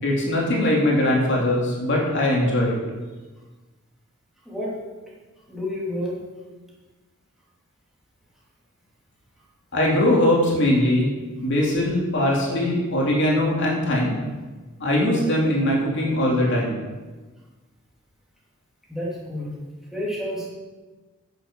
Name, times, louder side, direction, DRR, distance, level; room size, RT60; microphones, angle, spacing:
voice 1, 0.0-2.8 9.7-11.1 11.4-14.2 14.8-16.8, left 1 dB, 55° left, -3 dB, 2.8 m, -21 dB
voice 2, 4.4-4.8 5.5-6.3 18.9-19.6 19.9-20.5, left 1 dB, ahead, -7 dB, 2.9 m, -30 dB
10.0 x 6.9 x 7.3 m, 1.3 s
head